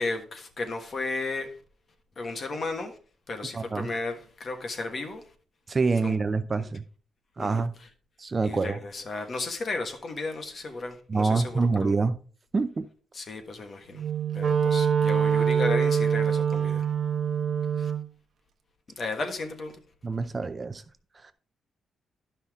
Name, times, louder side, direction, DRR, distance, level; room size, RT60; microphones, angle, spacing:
voice 1, 0.0-1.6 2.2-3.0 3.3-5.2 6.0-6.1 6.6-6.7 7.4-7.6 8.4-11.9 13.1-14.0 14.3-16.9 17.8-17.9 19.0-19.8, left 3 dB, 35° left, 1.4 m, -34 dB
voice 2, 3.5-3.9 5.7-6.8 7.4-7.7 8.2-8.8 11.1-12.1 12.5-12.9 20.0-20.8 21.2-21.3, right 4 dB, 25° right, 0.4 m, -26 dB
Wind instrument woodwind instrument, 13.9-18.1, right 7 dB, 50° right, 0.9 m, -24 dB
12.5 x 5.6 x 3.5 m
cardioid pair, 150°, 0 cm